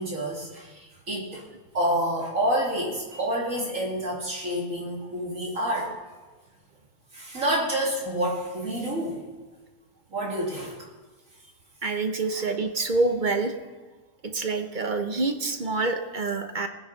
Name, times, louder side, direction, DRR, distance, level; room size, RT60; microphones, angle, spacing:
voice 1, 0.0-1.5 1.7-5.9 7.1-9.2 10.1-10.8 12.3-12.4, right 1 dB, 65° right, -3 dB, 3.0 m, -28 dB
voice 2, 11.8-13.5 14.2-16.7, right 3 dB, 40° right, 7 dB, 0.9 m, -27 dB
20.0 x 9.9 x 4.0 m, 1.3 s
omnidirectional pair, 1.5 m